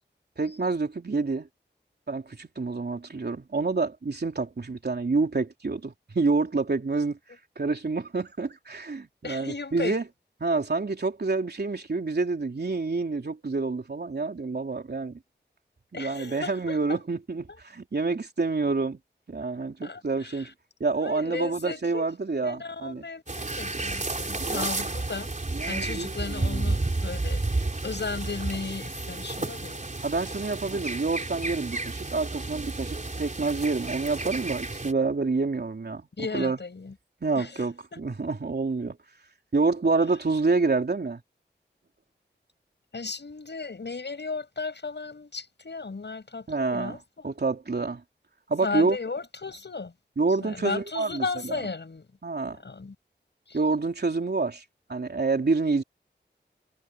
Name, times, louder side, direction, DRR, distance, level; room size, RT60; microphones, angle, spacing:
voice 1, 0.4-1.5 2.1-7.2 7.6-10.0 10.4-15.2 15.9-19.0 19.3-20.5 20.8-23.0 24.3-24.7 25.5-26.8 30.0-36.0 36.3-36.6 37.2-39.0 39.5-41.2 46.5-47.0 47.2-48.0 48.5-49.0 50.2-51.6 52.2-52.6 53.5-54.6 54.9-55.8, right 3 dB, 60° right, 3.4 m, -28 dB
voice 2, 9.2-10.0 15.9-17.0 19.8-20.5 20.9-22.1 22.4-25.3 25.7-29.8 36.2-36.9 37.3-38.0 42.9-47.2 48.6-49.9 50.4-52.1 52.6-53.0 53.5-53.6, left 4 dB, 65° left, 6.9 m, -35 dB
sound 1, 23.3-34.9, right 2 dB, 40° right, 3.8 m, -31 dB
wide cardioid pair, 55°, 19 cm